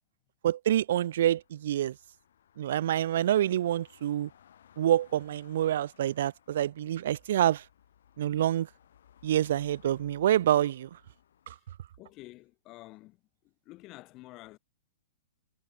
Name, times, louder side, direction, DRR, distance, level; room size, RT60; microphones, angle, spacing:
voice 1, 0.4-1.9 2.6-4.3 4.8-7.6 8.2-8.7 9.2-10.9 11.5-11.6, right 11 dB, 65° right, 0.4 m, -27 dB
sound 1, 0.9-11.6, left 9 dB, 75° left, 4.4 m, -62 dB
voice 2, 12.0-13.2 13.7-14.6, left 19 dB, 30° left, 1.0 m, -49 dB
hypercardioid pair, 150°, 0 cm